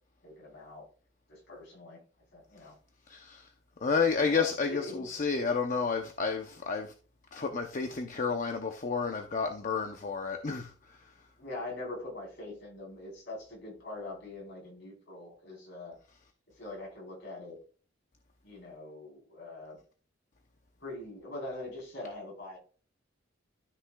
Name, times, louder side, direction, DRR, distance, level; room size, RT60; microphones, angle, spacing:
voice 1, 0.2-0.9 1.3-2.0 2.3-2.8 4.2-5.1 11.4-16.0 16.6-17.6 18.4-19.8 20.8-22.6, left 2 dB, 65° left, 4.1 m, -43 dB
voice 2, 3.1-3.5 3.8-6.9 7.3-11.0, left 5 dB, 40° left, 0.7 m, -31 dB
13.0 x 5.9 x 2.3 m
head